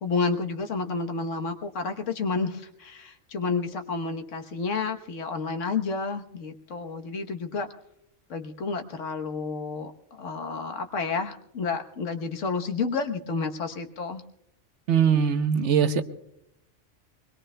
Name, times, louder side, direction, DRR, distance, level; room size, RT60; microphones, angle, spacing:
voice 1, 0.0-7.7 8.3-14.2, left 4 dB, 80° left, 5 dB, 1.5 m, -30 dB
voice 2, 14.9-16.0, right 7 dB, 70° right, 9 dB, 1.1 m, -21 dB
24.5 x 21.0 x 2.2 m, 0.78 s
omnidirectional pair, 1.3 m